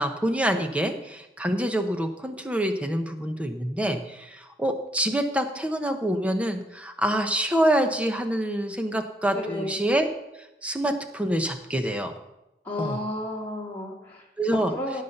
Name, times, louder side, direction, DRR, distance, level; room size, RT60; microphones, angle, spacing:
voice 1, 0.0-10.1 10.6-12.2 12.8-13.0 14.4-14.7, right 1 dB, 5° right, 6 dB, 0.9 m, -26 dB
voice 2, 9.3-9.8 12.6-14.2 14.5-15.0, left 1 dB, 10° left, -4 dB, 2.6 m, -32 dB
16.5 x 5.7 x 6.6 m, 0.96 s
head